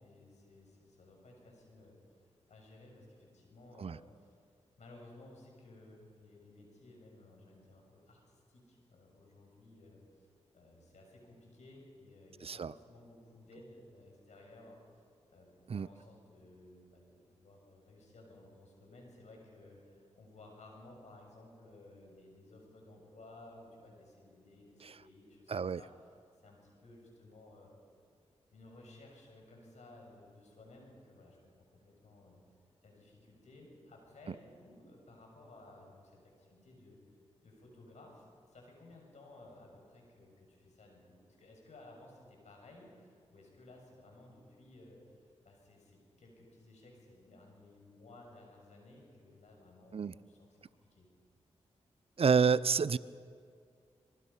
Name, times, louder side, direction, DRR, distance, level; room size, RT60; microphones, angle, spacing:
voice 1, 0.0-4.4 4.8-10.3 10.5-14.8 15.3-25.9 26.4-27.7 28.5-31.5 31.8-32.4 32.8-37.0 37.4-51.1, left 2 dB, 75° left, 0 dB, 6.7 m, -57 dB
voice 2, 12.4-12.7 15.7-15.9 24.8-24.9 25.5-25.8 49.9-50.2 52.2-53.0, right 6 dB, 55° right, 18 dB, 0.6 m, -29 dB
24.5 x 22.5 x 5.7 m, 2.2 s
cardioid pair, 45°, 12 cm